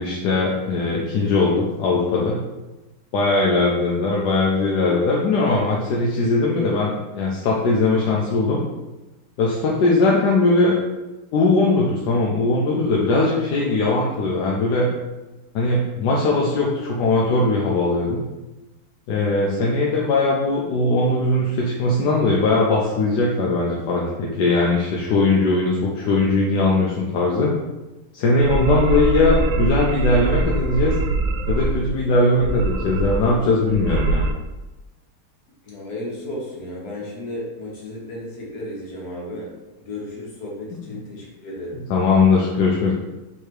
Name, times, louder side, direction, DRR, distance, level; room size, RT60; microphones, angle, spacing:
voice 1, 0.0-2.4 3.1-8.6 9.4-10.7 11.3-14.9 15.5-18.2 19.1-27.5 28.1-30.9 31.5-34.3 41.9-42.9, left 2 dB, 85° left, -3 dB, 1.3 m, -20 dB
voice 2, 3.4-3.7 35.6-39.5 39.8-41.8, left 1 dB, 65° left, -4 dB, 1.7 m, -34 dB
sound 1, 28.4-31.9 32.4-33.4 33.7-34.3, right 3 dB, 70° right, 1.0 m, -23 dB
3.5 x 3.2 x 4.5 m, 1.1 s
omnidirectional pair, 1.8 m